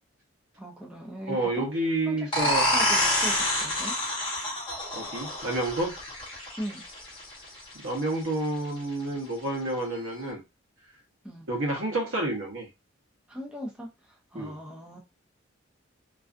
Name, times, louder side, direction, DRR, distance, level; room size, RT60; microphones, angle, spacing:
voice 1, 0.6-1.7 2.1-3.9 6.6-6.8 11.2-11.5 13.3-15.0, equal, 5° right, 0.5 m, -39 dB
voice 2, 1.3-2.6 4.9-5.9 7.8-10.4 11.5-12.7 14.3-14.5, right 2 dB, 75° right, 0.8 m, -29 dB
sound 1, 2.3-7.7, equal, 25° left, 0.9 m, -27 dB
2.5 x 2.3 x 2.4 m
head